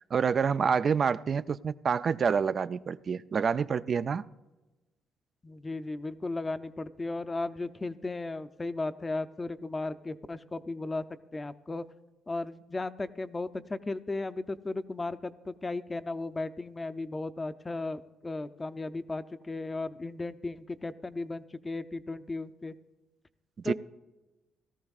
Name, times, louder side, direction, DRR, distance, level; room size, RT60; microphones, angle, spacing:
voice 1, 0.0-4.2 23.6-23.7, right 6 dB, 45° right, 15 dB, 0.3 m, -27 dB
voice 2, 5.4-11.0 11.3-11.8 12.3-22.7 23.6-23.7, left 2 dB, 25° left, 11 dB, 0.5 m, -35 dB
17.5 x 13.5 x 2.4 m, 1.1 s
cardioid pair, 90°, 0 cm